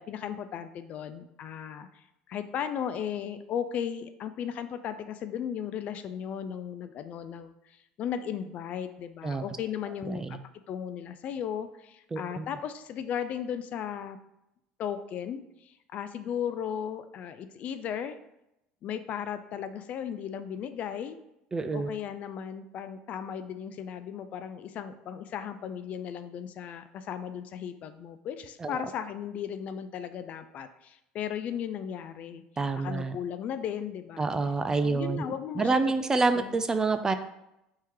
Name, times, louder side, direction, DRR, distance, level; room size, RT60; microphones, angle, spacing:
voice 1, 0.0-10.4 10.7-14.2 14.8-18.2 18.8-21.2 21.7-32.4 32.8-34.3 34.8-35.9 36.3-36.6, left 8 dB, 50° left, 11 dB, 0.4 m, -36 dB
voice 2, 10.1-10.4 12.1-12.5 21.5-22.0 28.6-28.8 32.6-33.2 34.2-37.1, right 3 dB, 20° right, 9 dB, 0.3 m, -28 dB
3.6 x 2.9 x 4.6 m, 0.86 s
supercardioid pair, 100°, 3 cm